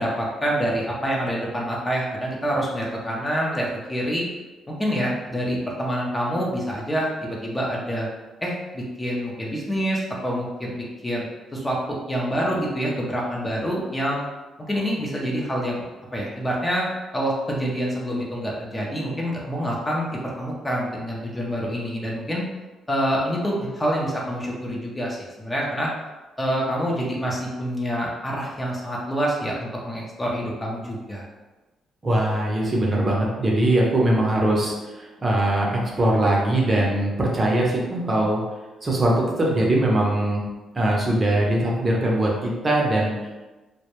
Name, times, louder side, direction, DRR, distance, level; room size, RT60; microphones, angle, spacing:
voice 1, 0.0-4.3 4.7-8.1 8.4-11.3 11.5-14.2 14.6-15.8 16.1-16.9 17.1-22.4 22.9-25.9 26.4-31.3, equal, 20° left, -3 dB, 0.5 m, -26 dB
voice 2, 32.0-38.4 38.8-40.4 40.7-43.3, right 1 dB, 30° right, -3 dB, 0.6 m, -21 dB
2.1 x 2.1 x 2.9 m, 1.2 s
cardioid pair, 90°, 0 cm